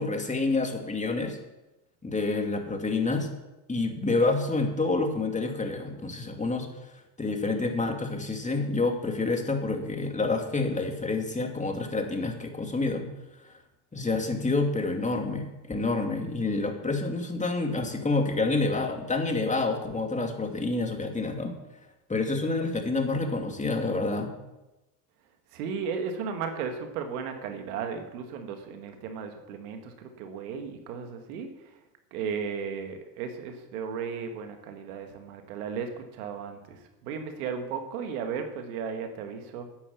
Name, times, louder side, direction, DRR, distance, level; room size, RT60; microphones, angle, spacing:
voice 1, 0.0-1.4 2.0-3.3 3.7-6.7 7.2-13.1 13.9-21.6 22.1-24.3, left 3 dB, 15° left, 3 dB, 2.8 m, -28 dB
voice 2, 25.5-31.5 32.1-39.7, right 6 dB, 75° right, 6 dB, 2.1 m, -35 dB
11.5 x 9.7 x 7.2 m, 0.99 s
hypercardioid pair, 75°, 45 cm